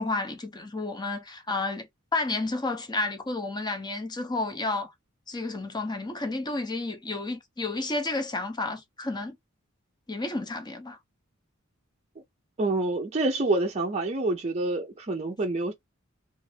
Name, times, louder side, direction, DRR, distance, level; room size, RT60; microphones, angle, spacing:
voice 1, 0.0-1.9 2.1-4.9 5.3-9.4 10.1-11.0, left 2 dB, 20° left, 0.6 m, -31 dB
voice 2, 12.6-15.7, right 2 dB, 30° right, 0.5 m, -27 dB
2.5 x 2.5 x 3.2 m
head